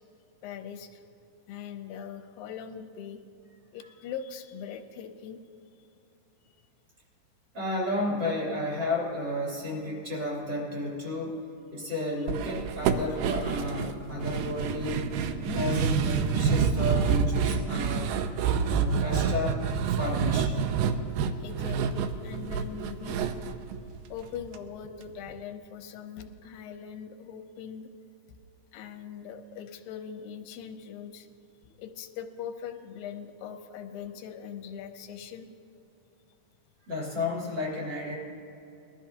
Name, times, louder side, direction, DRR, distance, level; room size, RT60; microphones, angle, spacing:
voice 1, 0.4-1.0 1.5-3.2 3.7-5.4 21.4-23.4 24.1-27.9 28.7-31.3 31.8-35.5, left 8 dB, 90° left, 6 dB, 2.5 m, -41 dB
voice 2, 7.5-11.3 11.7-15.1 15.4-18.1 18.7-19.6 19.9-20.6 36.9-38.1, left 1 dB, 30° right, -5 dB, 3.4 m, -32 dB
sound 1, 12.3-24.6 24.8-24.9 25.3-25.4, right 6 dB, 80° right, 2.1 m, -28 dB
21.0 x 13.5 x 2.8 m, 2.9 s
omnidirectional pair, 4.0 m